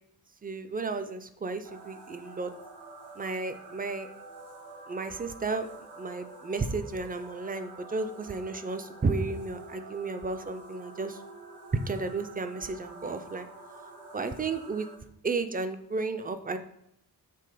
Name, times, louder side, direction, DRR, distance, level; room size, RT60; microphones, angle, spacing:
voice 1, 0.4-2.5 3.2-4.1 4.9-5.7 6.0-11.2 11.9-13.5 14.1-14.9 15.2-16.6, right 3 dB, 25° right, 9 dB, 0.3 m, -33 dB
sound 1, 1.6-15.0, right 3 dB, 65° right, 1.1 m, -47 dB
6.8 x 3.6 x 4.9 m, 0.80 s
wide cardioid pair, 175°, 40 cm